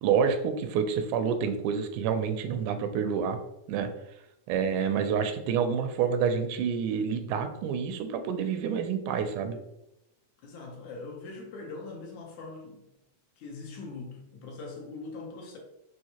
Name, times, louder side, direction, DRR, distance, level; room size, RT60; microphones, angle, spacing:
voice 1, 0.0-3.4 3.7-3.9 4.5-9.6, right 7 dB, 85° right, 8 dB, 2.0 m, -28 dB
voice 2, 10.4-12.9 13.4-15.6, left 3 dB, 75° left, 0 dB, 2.2 m, -42 dB
5.5 x 3.1 x 2.8 m, 0.87 s
omnidirectional pair, 3.5 m